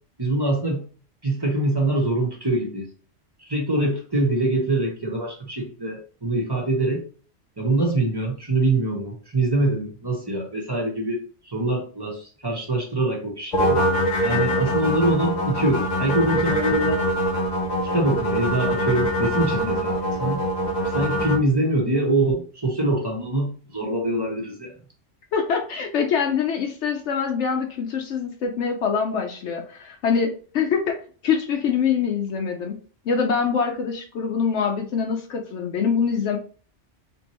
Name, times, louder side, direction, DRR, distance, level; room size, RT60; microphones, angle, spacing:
voice 1, 0.2-0.8 1.2-2.9 3.4-7.0 7.6-13.8 14.2-17.0 17.9-20.4 20.9-24.7, right 2 dB, 25° right, -1 dB, 0.8 m, -24 dB
sound 1, 13.5-21.4, equal, 45° left, 0.8 m, -23 dB
voice 2, 25.3-32.8 33.1-36.4, left 6 dB, 75° left, 2 dB, 0.9 m, -24 dB
3.5 x 2.9 x 3.0 m, 0.39 s
omnidirectional pair, 1.2 m